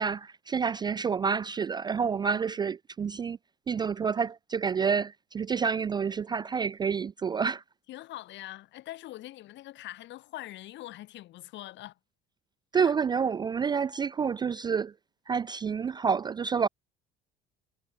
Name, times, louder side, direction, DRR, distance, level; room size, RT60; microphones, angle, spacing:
voice 1, 0.0-3.4 3.7-7.6 12.7-14.9 15.3-16.7, right 6 dB, 20° right, 0.4 m, -28 dB
voice 2, 7.9-12.0 12.7-12.9, left 15 dB, 60° left, 5.7 m, -43 dB
cardioid pair, 140°, 21 cm